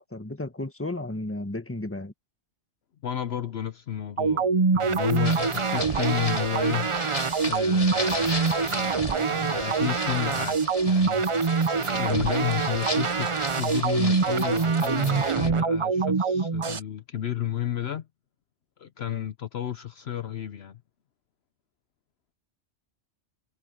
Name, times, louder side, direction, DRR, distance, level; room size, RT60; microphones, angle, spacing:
voice 1, 0.0-2.1 19.1-19.2, left 2 dB, 10° left, 1.4 m, -34 dB
voice 2, 3.0-6.9 7.4-18.1 18.8-20.8, left 11 dB, 65° left, 0.9 m, -32 dB
sound 1, 4.2-16.8, right 5 dB, 40° right, 0.5 m, -25 dB
sound 2, 5.2-15.5, left 2 dB, 30° left, 2.5 m, -36 dB
omnidirectional pair, 1.2 m